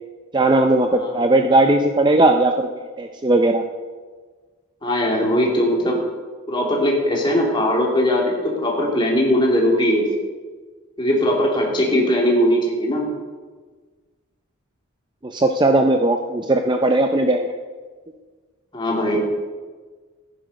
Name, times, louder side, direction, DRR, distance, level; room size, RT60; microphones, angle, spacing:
voice 1, 0.3-3.6 11.9-12.1 15.2-17.5, right 2 dB, 20° right, 5 dB, 0.5 m, -18 dB
voice 2, 4.8-6.0 6.5-10.1 11.0-13.1 18.7-19.2, equal, 20° left, -2 dB, 2.5 m, -19 dB
15.0 x 10.0 x 5.2 m, 1.4 s
head